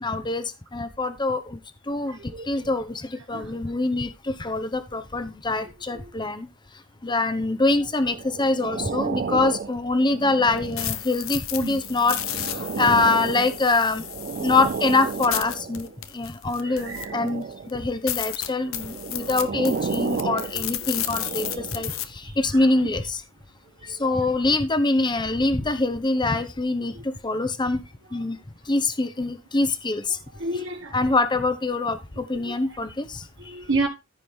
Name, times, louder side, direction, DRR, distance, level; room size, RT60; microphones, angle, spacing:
voice 1, 0.0-1.6 1.9-2.2 2.5-6.5 7.0-14.0 14.4-15.9 16.1-23.2 23.8-27.8 28.1-28.4 28.7-30.2 30.9-33.2, left 3 dB, 20° left, 0.9 m, -24 dB
voice 2, 2.1-2.7 3.3-3.5 5.9-6.1 11.6-11.8 16.6-17.2 19.0-19.3 20.3-20.7 21.1-22.7 23.8-24.2 26.9-27.0 30.3-31.0 32.3-32.6 33.4-33.9, right 2 dB, 60° right, 1.4 m, -33 dB
sound 1, 8.0-11.1 11.7-15.9 16.7-17.8 18.6-22.0 22.7-22.8, right 5 dB, 45° right, 0.4 m, -32 dB
sound 2, 10.5-17.3 17.7-17.8 18.1-22.0, left 12 dB, 80° left, 1.0 m, -33 dB
14.5 x 4.9 x 3.7 m
head